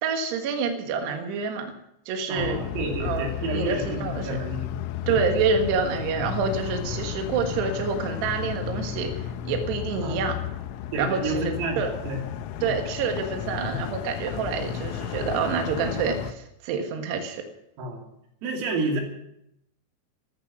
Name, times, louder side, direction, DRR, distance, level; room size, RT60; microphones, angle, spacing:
voice 1, 0.0-1.7 2.1-2.6 3.0-4.3 5.1-10.3 11.0-12.0 12.6-17.4, right 5 dB, 65° right, 4 dB, 3.4 m, -27 dB
voice 2, 2.3-4.7 5.1-5.2 10.0-10.2 10.9-12.2 12.6-12.8 13.7-13.8 14.6-14.7 17.8-18.1 18.4-19.0, right 2 dB, 90° right, 1 dB, 5.4 m, -30 dB
sound 1, 2.4-16.3, left 10 dB, 90° left, 3.4 m, -33 dB
15.5 x 14.0 x 6.2 m, 0.80 s
omnidirectional pair, 5.8 m